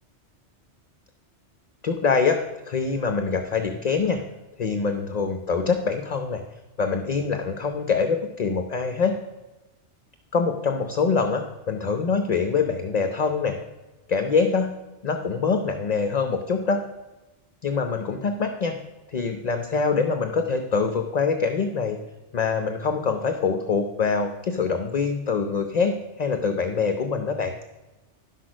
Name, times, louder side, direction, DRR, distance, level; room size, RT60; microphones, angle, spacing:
voice 1, 1.8-4.2 4.6-6.4 6.8-9.2 10.3-13.6 14.1-14.7 15.0-16.8 17.6-18.8 19.1-22.0 22.3-27.5, left 5 dB, 45° left, 7 dB, 0.7 m, -24 dB
11.0 x 6.1 x 6.2 m, 1.1 s
omnidirectional pair, 1.2 m